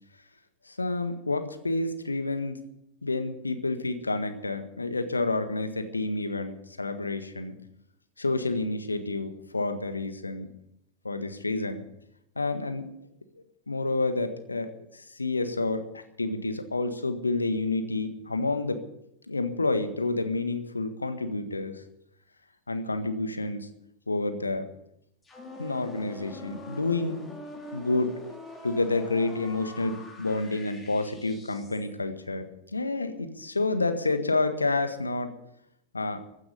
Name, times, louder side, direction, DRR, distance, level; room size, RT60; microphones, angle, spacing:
voice 1, 0.7-2.6 3.0-7.6 8.2-10.5 11.1-11.9 12.3-12.9 13.7-18.8 19.3-21.8 22.7-23.7 24.1-24.7 25.6-27.2 27.7-28.1 28.6-35.3 35.9-36.2, left 3 dB, 80° left, 9 dB, 1.6 m, -29 dB
sound 1, 25.2-31.9, left 2 dB, 15° left, 4.0 m, -44 dB
15.5 x 9.5 x 8.2 m, 0.80 s
figure-of-eight pair, 90°, 0 cm